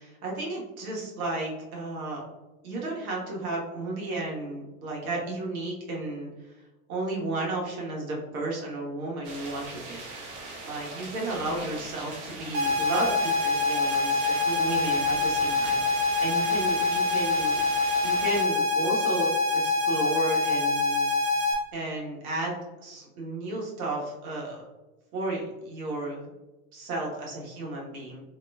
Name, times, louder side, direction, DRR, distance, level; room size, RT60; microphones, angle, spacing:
voice 1, 0.2-2.2 2.6-6.3 6.9-10.0 10.6-17.7 18.0-21.0 21.7-22.5 22.8-24.7 25.1-26.2 26.7-28.2, right 2 dB, 70° right, -2 dB, 1.3 m, -33 dB
sound 1, 9.2-18.4, right 3 dB, 50° right, 1.2 m, -40 dB
sound 2, 12.5-21.5, left 3 dB, 30° right, 0.8 m, -25 dB
3.8 x 2.9 x 2.3 m, 1.1 s
hypercardioid pair, 100°, 44 cm